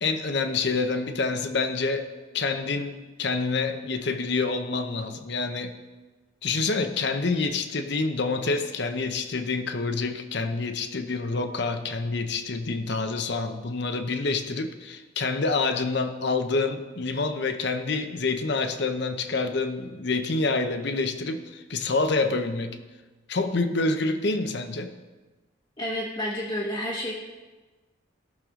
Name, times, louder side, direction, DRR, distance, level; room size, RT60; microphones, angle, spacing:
voice 1, 0.0-2.1 2.3-5.8 6.4-22.8 23.3-24.9, left 3 dB, 55° left, 8 dB, 0.8 m, -27 dB
voice 2, 25.8-27.1, equal, 25° left, -4 dB, 1.2 m, -30 dB
18.0 x 6.7 x 3.7 m, 1.3 s
head